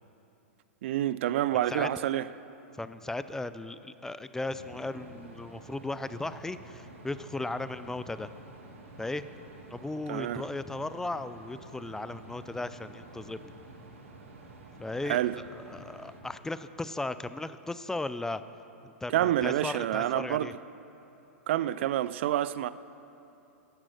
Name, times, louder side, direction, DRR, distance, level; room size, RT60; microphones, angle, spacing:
voice 1, 0.8-2.3 10.1-10.4 15.0-15.3 19.1-20.5 21.5-22.7, right 12 dB, 60° right, 0.4 m, -28 dB
voice 2, 1.7-2.2 2.8-8.3 9.0-9.3 9.7-13.4 14.8-18.4 18.8-20.5, left 2 dB, 5° left, 0.4 m, -36 dB
sound 1, 4.4-16.2, right 2 dB, 75° right, 2.3 m, -49 dB
14.0 x 10.5 x 6.4 m
hypercardioid pair, 110°, 7 cm